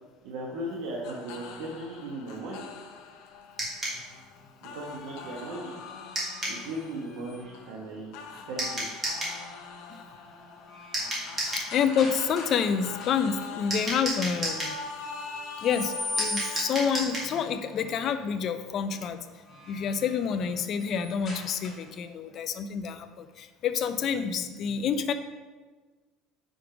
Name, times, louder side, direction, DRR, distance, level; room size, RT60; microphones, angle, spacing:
voice 1, 0.2-2.6 4.6-5.7 6.5-9.0, right 1 dB, 75° right, -4 dB, 1.1 m, -37 dB
sound 1, 1.0-20.6, left 5 dB, 70° left, 0.7 m, -44 dB
sound 2, 3.6-4.0 6.1-6.6 8.6-9.4 10.9-11.7 13.7-14.8 16.2-17.3, right 1 dB, 20° right, 2.0 m, -31 dB
sound 3, 4.8-7.7 9.5-9.8 10.2-12.7 12.9-13.5 15.0-16.9 19.2-22.1, left 2 dB, 20° left, 2.1 m, -41 dB
voice 2, 11.4-14.8 15.6-19.3 19.7-25.1, left 7 dB, 40° left, 10 dB, 0.4 m, -28 dB
5.2 x 4.5 x 5.0 m, 1.3 s
cardioid pair, 155°, 0 cm